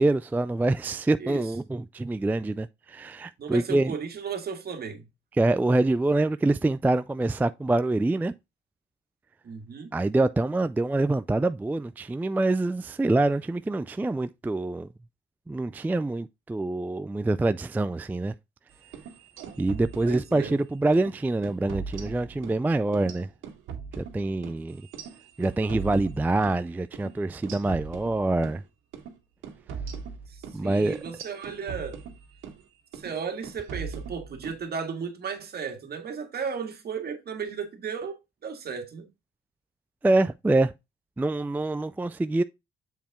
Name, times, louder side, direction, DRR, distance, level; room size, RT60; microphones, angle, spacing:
voice 1, 0.0-3.9 5.4-8.3 9.9-14.9 15.5-18.3 19.6-23.3 24.0-24.8 25.4-28.6 30.5-31.0 40.0-40.7 41.2-42.4, right 2 dB, 10° right, 0.3 m, -25 dB
voice 2, 1.2-1.5 3.4-5.1 9.4-9.9 20.0-20.6 30.3-32.0 32.9-39.1, right 6 dB, 55° right, 1.8 m, -35 dB
sound 1, 18.8-20.6 20.9-21.1 21.4-22.6 22.9-26.6 26.9-27.1 27.4-28.6 28.9-29.1 29.4-32.6 32.9-33.2 33.4-34.6, right 6 dB, 85° right, 1.7 m, -40 dB
7.5 x 4.3 x 3.5 m
cardioid pair, 90°, 20 cm